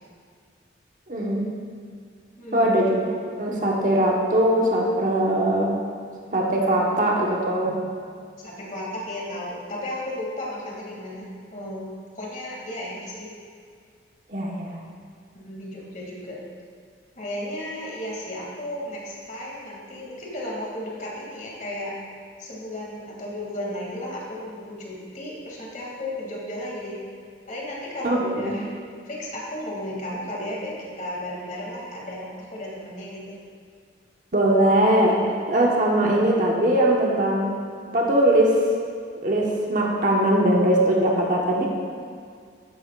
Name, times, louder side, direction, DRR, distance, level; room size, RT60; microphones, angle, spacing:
voice 1, 1.1-1.5 2.5-3.0 3.4-5.7 6.3-7.8 14.3-14.8 28.0-28.5 34.3-37.6 37.9-38.6 39.2-41.7, right 1 dB, 45° right, -2 dB, 1.3 m, -21 dB
voice 2, 2.4-2.8 8.4-11.8 12.2-13.3 15.4-16.4 17.2-21.9 22.4-27.0 27.5-28.6 29.1-33.4, left 1 dB, 45° left, -4 dB, 2.5 m, -34 dB
13.5 x 9.9 x 2.5 m, 2.2 s
head